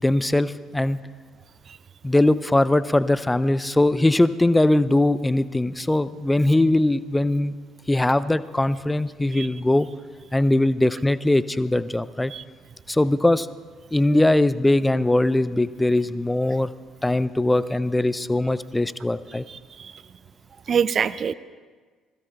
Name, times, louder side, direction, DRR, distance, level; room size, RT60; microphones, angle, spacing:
voice 1, 0.0-1.0 2.0-7.5 7.9-9.9 10.3-12.3 12.9-13.5 13.9-16.7 17.0-19.4, left 1 dB, 10° left, 16 dB, 0.5 m, -21 dB
voice 2, 20.7-21.3, right 7 dB, 45° right, 17 dB, 0.4 m, -24 dB
27.5 x 21.0 x 2.3 m, 1.4 s
figure-of-eight pair, 50°, 0 cm